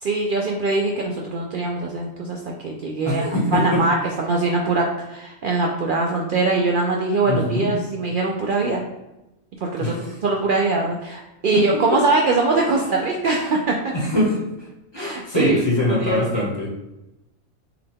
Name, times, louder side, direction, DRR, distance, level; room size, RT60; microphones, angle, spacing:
voice 1, 0.0-3.3 3.5-8.8 9.6-13.8 15.0-15.6 15.9-16.5, right 3 dB, 85° right, 0 dB, 0.4 m, -22 dB
voice 2, 3.0-3.8 7.2-7.7 9.8-10.2 11.5-11.7 13.8-16.7, left 1 dB, 20° left, -4 dB, 1.0 m, -23 dB
5.7 x 2.2 x 3.4 m, 0.95 s
omnidirectional pair, 1.4 m